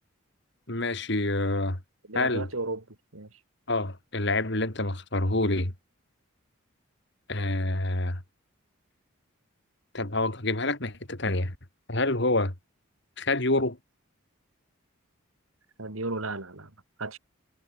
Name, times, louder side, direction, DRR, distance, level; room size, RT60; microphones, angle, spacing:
voice 1, 0.7-1.8 2.1-2.5 3.7-5.7 7.3-8.2 9.9-11.5 11.9-12.5 13.2-13.8, left 2 dB, 55° left, 3.2 m, -27 dB
voice 2, 2.1-2.8 3.1-3.3 15.8-16.7 17.0-17.2, right 2 dB, 85° right, 3.1 m, -33 dB
head